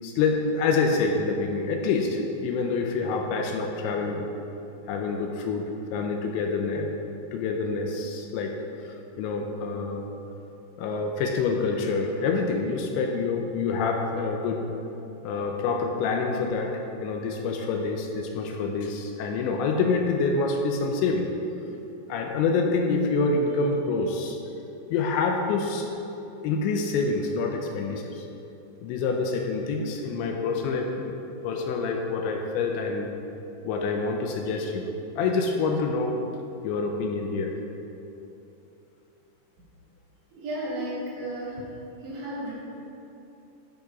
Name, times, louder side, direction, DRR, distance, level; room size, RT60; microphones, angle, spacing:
voice 1, 0.0-4.3 4.9-5.6 5.9-6.9 7.3-8.5 8.8-10.1 10.8-14.6 15.2-21.3 22.1-24.4 24.9-25.9 26.4-28.3 28.8-31.2 31.4-33.1 33.6-34.9 35.2-36.2 36.6-37.6, left 4 dB, 80° left, 2 dB, 2.9 m, -27 dB
voice 2, 40.3-41.6 42.0-42.5, right 1 dB, 70° right, -7 dB, 4.9 m, -33 dB
13.0 x 6.0 x 5.2 m, 2.9 s
omnidirectional pair, 5.4 m